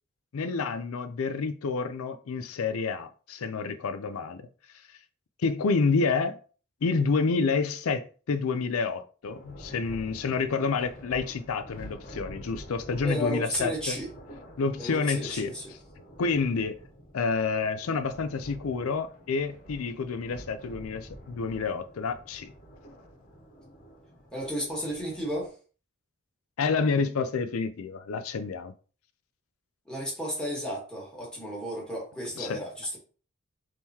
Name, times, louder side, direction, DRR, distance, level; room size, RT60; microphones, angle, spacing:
voice 1, 0.3-4.5 5.4-6.4 6.8-14.0 14.6-15.5 16.2-16.7 17.1-22.5 26.6-28.7 32.4-32.6, left 4 dB, 75° left, 0.4 m, -29 dB
Thunder, 9.2-25.5, equal, 40° left, 1.3 m, -48 dB
voice 2, 13.0-14.1 14.8-15.7 24.3-25.5 29.8-33.0, equal, 5° left, 1.6 m, -33 dB
3.7 x 3.0 x 4.2 m
head